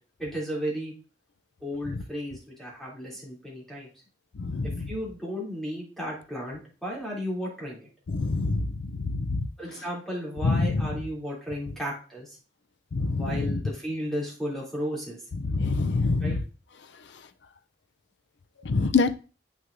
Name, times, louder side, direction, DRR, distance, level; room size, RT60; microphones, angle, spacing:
voice 1, 0.2-0.9 1.6-3.9 4.8-7.9 9.6-12.4 13.2-15.2 16.2-16.4, equal, ahead, -5 dB, 3.0 m, -34 dB
voice 2, 4.4-4.9 8.1-8.7 9.0-9.4 10.4-10.8 12.9-13.6 15.4-16.4 18.6-19.1, left 3 dB, 85° left, 11 dB, 0.6 m, -25 dB
7.6 x 6.3 x 2.6 m, 0.35 s
head